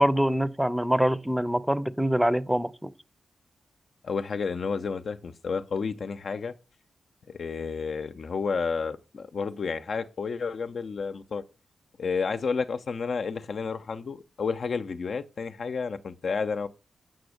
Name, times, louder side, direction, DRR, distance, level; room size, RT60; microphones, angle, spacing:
voice 1, 0.0-2.9, equal, 5° right, 0.7 m, -24 dB
voice 2, 4.0-6.5 7.3-11.4 12.0-16.7, left 5 dB, 70° left, 0.6 m, -31 dB
7.7 x 6.1 x 6.5 m
cardioid pair, 45°, 0 cm